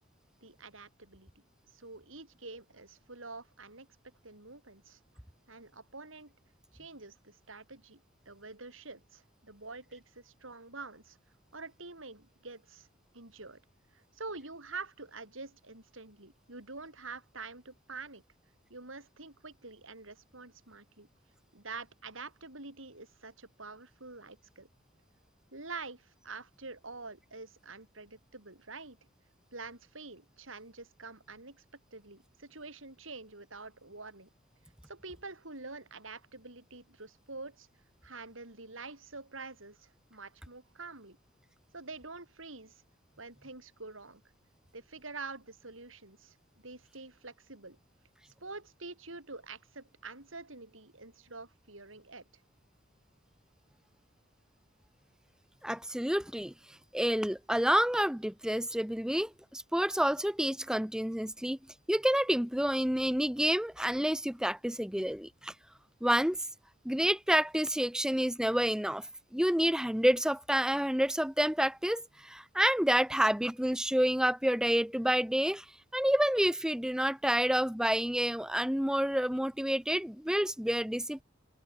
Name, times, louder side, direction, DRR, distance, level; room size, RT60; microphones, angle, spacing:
voice 1, 0.4-1.3 1.7-3.9 4.2-5.0 5.5-6.3 6.7-8.0 8.3-11.2 11.5-12.9 13.1-13.6 13.9-18.2 18.7-21.1 21.5-24.7 25.5-29.0 29.5-31.6 31.9-34.3 34.9-37.7 38.0-41.2 41.7-42.8 43.2-44.2 44.7-46.4 46.6-47.8 48.4-52.2, right 3 dB, 80° right, 7.4 m, -46 dB
voice 2, 55.6-56.5 56.9-61.6 61.9-65.5 66.0-66.4 66.8-69.1 69.3-75.6 75.9-81.2, equal, 5° right, 0.9 m, -29 dB
head